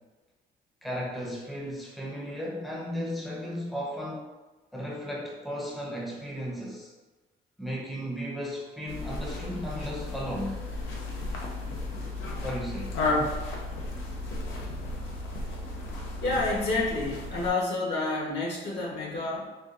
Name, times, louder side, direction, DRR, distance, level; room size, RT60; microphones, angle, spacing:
voice 1, 0.8-4.3 4.7-6.9 7.6-10.6 12.4-12.9, equal, ahead, -3 dB, 0.7 m, -35 dB
sound 1, 8.9-17.5, left 2 dB, 85° left, 0.6 m, -33 dB
voice 2, 16.2-19.5, left 2 dB, 60° left, -3 dB, 1.1 m, -29 dB
3.8 x 2.4 x 2.5 m, 1.2 s
cardioid pair, 90°, 20 cm